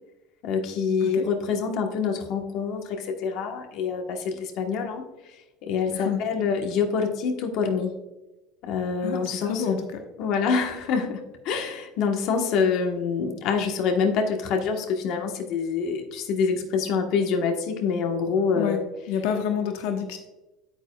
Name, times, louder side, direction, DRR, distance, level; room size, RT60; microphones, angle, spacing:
voice 1, 0.4-8.0 8.6-9.7 10.2-18.8, left 5 dB, 55° left, 3 dB, 1.2 m, -26 dB
voice 2, 5.9-6.2 9.0-10.0 18.6-18.8 19.1-20.2, left 7 dB, 80° left, 5 dB, 1.1 m, -28 dB
9.2 x 9.2 x 2.3 m, 1.0 s
cardioid pair, 150°, 0 cm